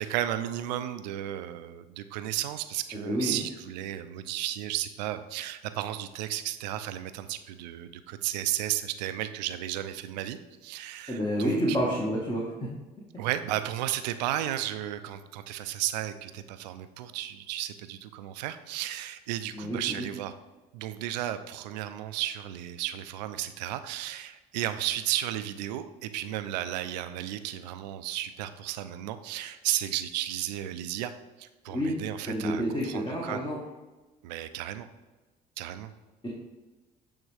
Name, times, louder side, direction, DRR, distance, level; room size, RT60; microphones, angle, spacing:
voice 1, 0.0-11.8 13.2-20.3 20.7-31.1 31.4-33.4 34.2-34.9 35.6-35.9, right 13 dB, 85° right, 11 dB, 0.4 m, -34 dB
voice 2, 3.0-3.4 11.1-12.7 19.5-20.1 31.7-32.0 32.3-33.6, equal, 20° left, -4 dB, 1.5 m, -29 dB
8.3 x 3.5 x 3.3 m, 1.2 s
hypercardioid pair, 65°, 21 cm